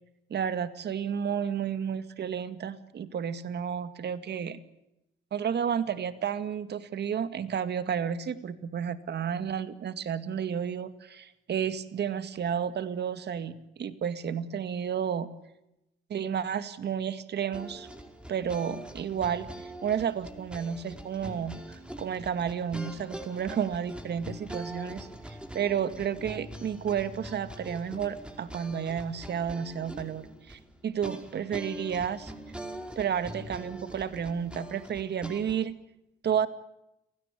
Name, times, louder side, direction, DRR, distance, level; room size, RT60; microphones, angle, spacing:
voice 1, 0.3-4.6 5.3-15.3 16.1-17.9 18.3-32.3 33.0-35.8 36.2-36.5, right 8 dB, 60° right, 12 dB, 2.1 m, -31 dB
sound 1, 17.5-35.6, equal, 5° right, 5.0 m, -43 dB
29.5 x 17.5 x 8.5 m, 0.87 s
cardioid pair, 90°, 20 cm